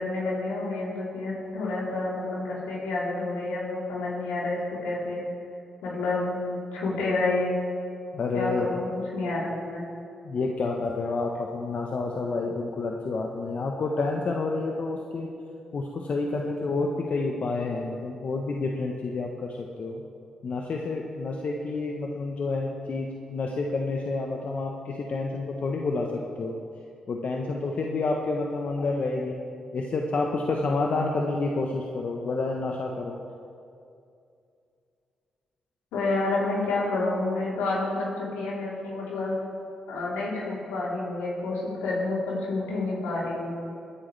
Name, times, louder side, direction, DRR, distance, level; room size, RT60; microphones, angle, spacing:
voice 1, 0.0-5.2 5.8-7.5 8.3-9.8 35.9-39.4 39.9-43.5, left 2 dB, 85° left, -6 dB, 3.7 m, -29 dB
voice 2, 8.1-8.7 10.2-15.3 15.7-20.0 20.4-26.6 27.1-29.4 29.7-33.2, left 3 dB, 60° left, 1 dB, 1.1 m, -29 dB
21.0 x 10.0 x 3.4 m, 2.5 s
hypercardioid pair, 45°, 3 cm